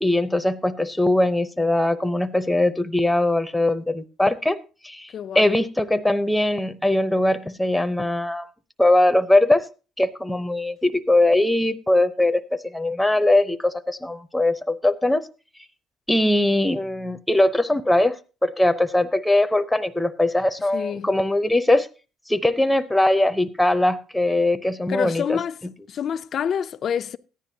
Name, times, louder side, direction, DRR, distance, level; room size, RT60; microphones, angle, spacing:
voice 1, 0.0-4.6 4.8-8.5 8.8-9.7 10.0-15.3 16.1-18.2 18.4-21.9 22.3-25.4, left 1 dB, 5° left, 0.7 m, -21 dB
voice 2, 5.1-5.6 20.7-21.1 24.9-25.6 25.9-27.2, left 8 dB, 55° left, 0.4 m, -27 dB
14.0 x 10.0 x 2.8 m
supercardioid pair, 80°, 0 cm